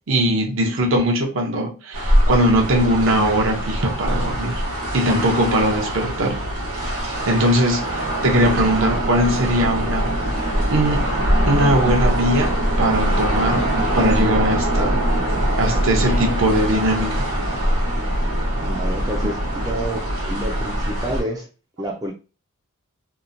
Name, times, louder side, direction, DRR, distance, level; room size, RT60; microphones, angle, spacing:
voice 1, 0.1-4.6 4.9-6.4 6.9-7.9 8.2-10.2 10.7-11.0 11.4-13.7 13.9-15.0 15.6-17.3, right 1 dB, 60° right, 0.6 m, -20 dB
sound 1, 1.9-21.2, equal, 85° right, 1.0 m, -22 dB
voice 2, 18.6-20.0 20.3-21.5 21.8-22.1, right 1 dB, 15° right, 0.3 m, -28 dB
2.9 x 2.1 x 2.5 m
head